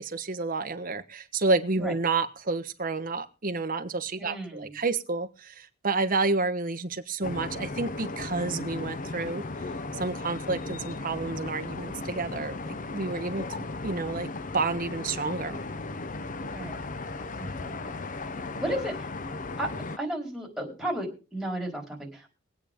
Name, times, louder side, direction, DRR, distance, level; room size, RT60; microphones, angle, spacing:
voice 1, 0.0-9.4 9.9-14.3 14.5-15.6, right 3 dB, 45° right, 9 dB, 1.2 m, -30 dB
voice 2, 4.2-4.8 13.2-13.5 16.5-16.8 17.4-18.0 18.6-18.9 19.6-19.7 20.0-22.3, right 1 dB, ahead, -1 dB, 4.5 m, -34 dB
sound 1, 7.2-20.0, left 3 dB, 40° left, 0.8 m, -36 dB
23.0 x 8.7 x 3.7 m, 0.33 s
head